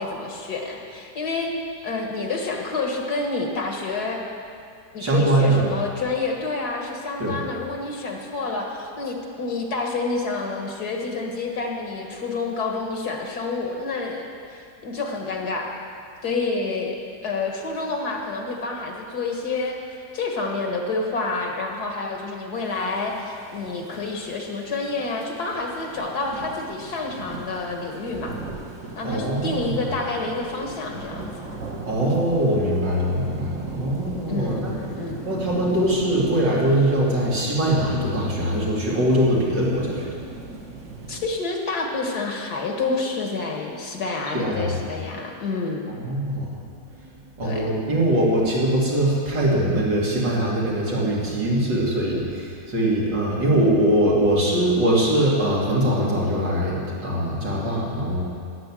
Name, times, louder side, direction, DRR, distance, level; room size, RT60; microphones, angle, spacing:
voice 1, 0.0-1.5 1.8-4.2 4.9-15.7 16.2-17.0 17.2-28.4 29.0-31.3 34.3-35.4 41.1-45.9 47.4-47.7, left 3 dB, 65° left, 1 dB, 2.1 m, -28 dB
voice 2, 5.0-5.7 7.2-7.4 29.0-30.0 31.9-34.8 35.2-40.2 44.3-44.8 45.9-46.5 47.4-58.2, right 1 dB, 80° right, -5 dB, 3.4 m, -22 dB
sound 1, 22.5-41.3, right 3 dB, 45° right, 1.5 m, -38 dB
12.5 x 9.9 x 7.6 m, 2.4 s
omnidirectional pair, 1.9 m